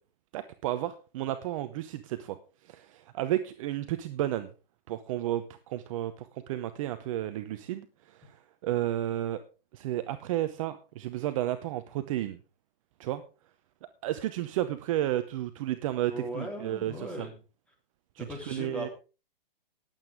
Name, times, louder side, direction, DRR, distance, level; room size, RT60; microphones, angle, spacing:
voice 1, 0.3-2.4 2.6-4.5 4.9-8.4 8.6-9.4 9.7-12.4 13.0-13.2 14.0-17.3 18.2-18.9, right 13 dB, 35° right, 11 dB, 0.7 m, -32 dB
voice 2, 16.1-17.4 18.2-18.9, equal, 5° left, 0 dB, 3.4 m, -38 dB
19.0 x 8.0 x 3.6 m, 0.33 s
hypercardioid pair, 140°, 29 cm